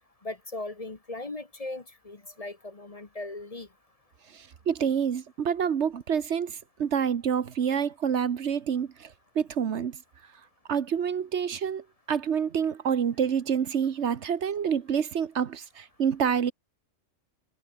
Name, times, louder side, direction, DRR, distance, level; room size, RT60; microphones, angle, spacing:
voice 1, 0.2-3.7, left 2 dB, 30° left, 1.2 m, -38 dB
voice 2, 4.3-10.0 10.7-16.5, right 7 dB, 65° right, 1.3 m, -28 dB
omnidirectional pair, 1.3 m